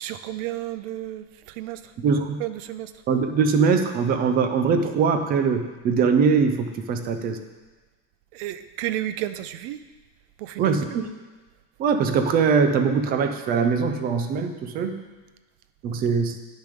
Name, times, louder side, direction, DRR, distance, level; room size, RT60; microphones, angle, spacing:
voice 1, 0.0-1.9 2.4-2.9 8.3-9.8 10.4-10.8, right 13 dB, 55° right, 12 dB, 0.6 m, -32 dB
voice 2, 2.0-2.4 3.1-7.4 10.6-11.0 11.8-15.0 15.8-16.4, right 5 dB, 25° right, 7 dB, 0.3 m, -22 dB
10.0 x 6.5 x 5.0 m, 1.2 s
cardioid pair, 160°, 45 cm